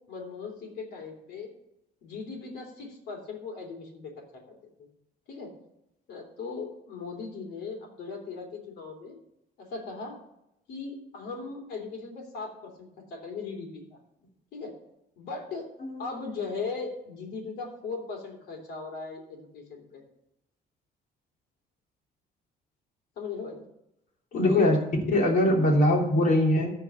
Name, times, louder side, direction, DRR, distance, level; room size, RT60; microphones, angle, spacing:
voice 1, 0.1-1.5 2.0-4.1 5.3-5.5 6.1-9.2 9.6-10.2 10.7-14.0 14.5-14.7 15.2-15.7 16.0-20.0 23.2-23.6 24.5-24.8, left 4 dB, 75° left, 2 dB, 3.3 m, -38 dB
voice 2, 24.3-24.8 25.1-26.7, left 1 dB, 55° left, 0 dB, 3.3 m, -21 dB
14.0 x 4.8 x 6.9 m, 0.85 s
cardioid pair, 110°, 17 cm